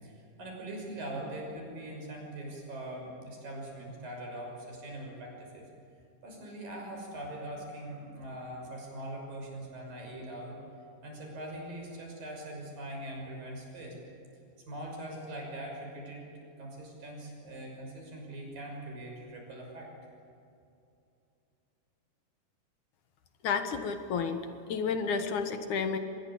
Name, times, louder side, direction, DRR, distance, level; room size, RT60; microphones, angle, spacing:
voice 1, 0.0-5.7 6.2-10.6 11.0-14.0 14.7-16.3 16.6-19.9, right 1 dB, 80° right, 0 dB, 8.0 m, -42 dB
voice 2, 23.4-26.0, left 5 dB, 65° left, 7 dB, 2.6 m, -31 dB
24.5 x 21.0 x 8.7 m, 2.6 s
omnidirectional pair, 3.9 m